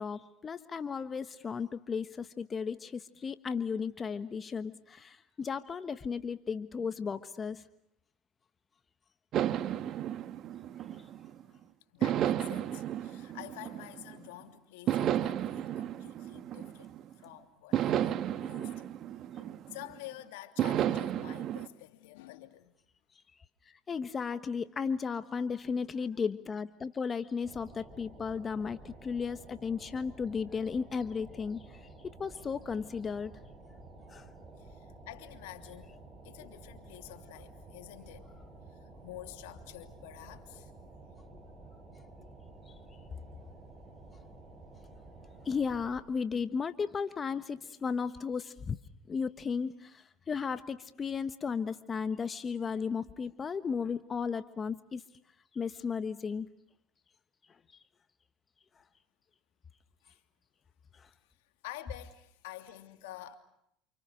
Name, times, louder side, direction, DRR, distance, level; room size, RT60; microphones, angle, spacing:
voice 1, 0.0-7.6 18.4-18.5 23.7-31.8 32.2-33.3 34.1-34.2 41.3-41.4 42.2-42.3 45.4-48.8 49.1-55.0 55.5-56.5 60.9-61.1, left 5 dB, 30° left, 1.3 m, -35 dB
sound 1, 9.3-11.4 12.0-14.3 14.9-17.1 17.7-20.0 20.6-21.7, right 11 dB, 50° right, 1.5 m, -33 dB
voice 2, 11.9-18.9 19.3-22.7 34.6-38.3 38.7-40.7 60.0-60.2 61.4-63.3, left 15 dB, 80° left, 3.0 m, -49 dB
sound 2, 27.4-46.0, right 2 dB, 20° right, 7.7 m, -52 dB
29.0 x 28.5 x 6.5 m
supercardioid pair, 95°, 0 cm